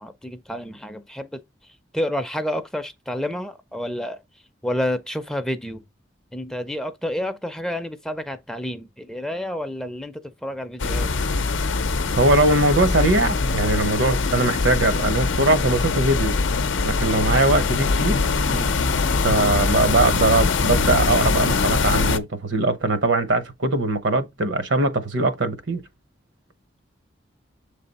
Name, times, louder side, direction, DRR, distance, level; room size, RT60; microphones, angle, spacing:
voice 1, 0.0-1.4 1.9-4.2 4.6-5.8 6.3-11.1 18.4-18.8, left 1 dB, 5° left, 0.4 m, -29 dB
sound 1, 10.8-22.2, left 4 dB, 85° left, 0.6 m, -22 dB
voice 2, 12.2-16.4 16.8-18.2 19.2-25.8, right 2 dB, 75° right, 0.8 m, -21 dB
7.2 x 3.3 x 4.0 m
head